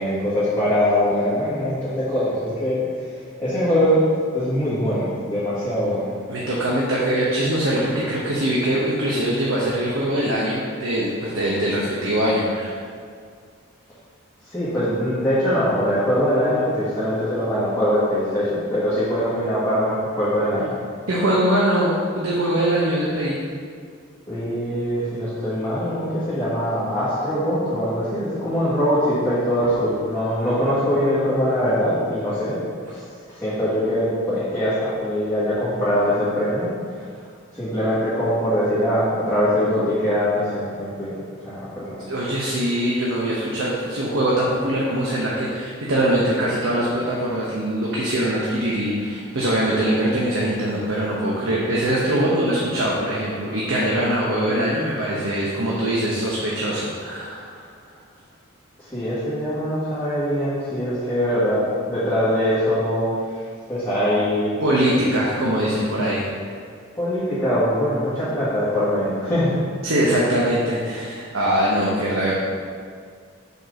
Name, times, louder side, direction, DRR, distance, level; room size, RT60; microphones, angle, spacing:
voice 1, 0.0-2.8 3.4-4.0 4.3-6.1 14.4-20.7 24.3-32.6 32.9-33.0 33.3-36.7 37.0-37.1 37.5-41.1 41.5-42.0 58.8-64.5 66.0-66.1 67.0-69.6, equal, 10° left, -13 dB, 1.6 m, -22 dB
voice 2, 6.3-12.7 21.1-23.4 42.1-57.7 64.6-66.3 69.8-72.4, right 1 dB, 85° right, -5 dB, 1.0 m, -22 dB
5.3 x 4.5 x 6.3 m, 2.1 s
head